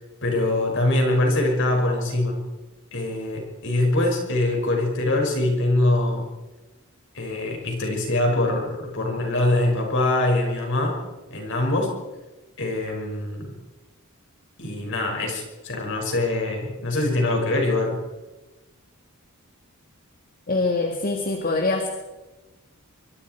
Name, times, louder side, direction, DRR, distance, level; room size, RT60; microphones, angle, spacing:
voice 1, 0.2-2.4 2.9-6.3 7.1-11.0 11.3-11.9 12.6-13.6 14.6-18.0, left 2 dB, 60° left, 1 dB, 5.8 m, -23 dB
voice 2, 20.5-21.9, left 3 dB, 40° left, 4 dB, 1.9 m, -24 dB
25.0 x 23.0 x 4.6 m, 1.2 s
head